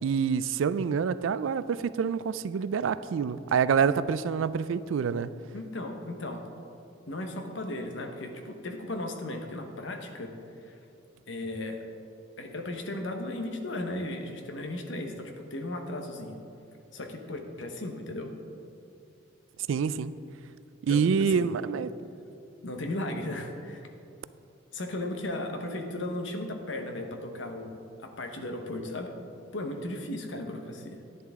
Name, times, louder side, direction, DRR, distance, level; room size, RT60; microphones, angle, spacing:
voice 1, 0.0-5.3 19.7-20.1 20.8-21.9, right 6 dB, 80° right, 15 dB, 0.3 m, -27 dB
voice 2, 5.5-6.4 7.1-10.3 10.6-10.7 11.3-11.8 12.4-16.4 16.9-18.3 20.9-21.0 21.3-21.5 22.6-23.9 24.7-29.1 29.5-31.0, left 1 dB, 75° left, 4 dB, 1.1 m, -36 dB
10.5 x 10.0 x 3.6 m, 2.5 s
head